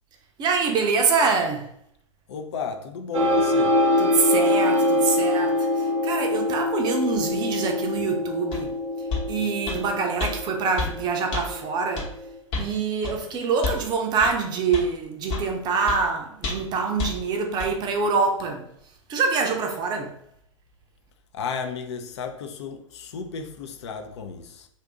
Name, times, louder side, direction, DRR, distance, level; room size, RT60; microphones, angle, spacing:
voice 1, 0.4-1.6 4.0-8.7 9.3-12.1 12.5-18.6 19.1-20.1, right 5 dB, 25° right, 0.5 m, -25 dB
voice 2, 2.3-3.8 21.3-24.7, left 5 dB, 55° left, 0.5 m, -33 dB
sound 1, 3.1-12.4, left 1 dB, 70° right, 0.7 m, -24 dB
sound 2, 8.5-8.6 9.1-9.3 9.7-9.8 10.2-10.3 10.8-10.9 11.3-11.4 12.0-12.1 12.5-12.7 13.0-13.2 13.6-13.8 14.2-14.3 14.7-14.9 15.3-15.5 15.9-16.0 16.4-16.7 17.0-17.1 17.6-17.7, left 4 dB, 35° left, 1.0 m, -29 dB
2.6 x 2.5 x 3.5 m
figure-of-eight pair, 105°, 17 cm